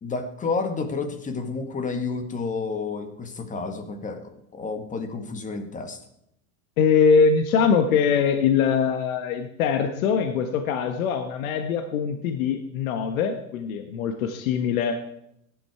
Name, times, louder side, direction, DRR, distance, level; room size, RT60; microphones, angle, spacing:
voice 1, 0.0-6.0, left 4 dB, 20° left, 8 dB, 1.6 m, -30 dB
voice 2, 6.8-15.0, left 6 dB, 75° left, 7 dB, 1.5 m, -22 dB
16.5 x 11.0 x 4.7 m, 0.78 s
supercardioid pair, 135°, 42 cm